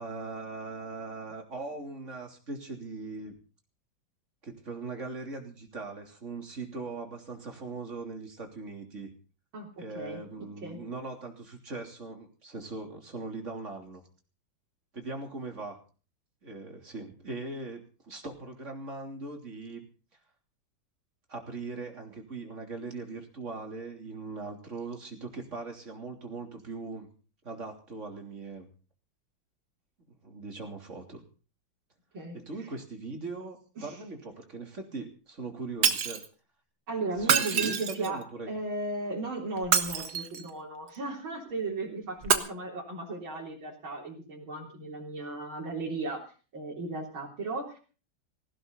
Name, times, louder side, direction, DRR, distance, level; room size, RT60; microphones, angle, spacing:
voice 1, 0.0-3.4 4.4-9.1 9.8-14.1 14.9-15.8 16.4-19.9 21.3-27.1 27.4-28.7 30.2-31.2 32.3-36.3 37.2-38.5, right 3 dB, 35° right, 3 dB, 3.6 m, -40 dB
voice 2, 9.5-10.8 32.1-32.4 33.8-34.0 36.9-38.2 38.5-46.2 46.5-47.8, right 2 dB, 85° right, -2 dB, 4.3 m, -36 dB
Shatter, 35.8-36.3 37.2-38.2 39.6-40.5 42.2-42.3, right 7 dB, 55° right, 1.8 m, -26 dB
18.0 x 16.5 x 4.1 m, 0.38 s
omnidirectional pair, 2.2 m